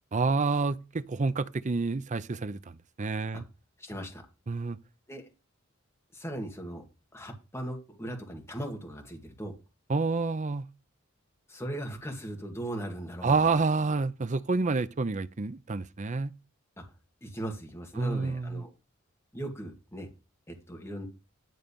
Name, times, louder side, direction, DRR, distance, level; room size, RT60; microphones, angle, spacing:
voice 1, 0.1-3.4 4.5-4.8 9.9-10.7 13.2-16.3 18.0-18.6, right 4 dB, 35° right, 0.6 m, -28 dB
voice 2, 3.8-4.2 5.1-5.3 6.1-6.8 7.1-9.5 11.5-13.4 16.8-16.9 17.2-18.7 19.3-20.1 20.5-21.1, right 1 dB, 15° left, 2.0 m, -38 dB
11.0 x 3.9 x 6.9 m
head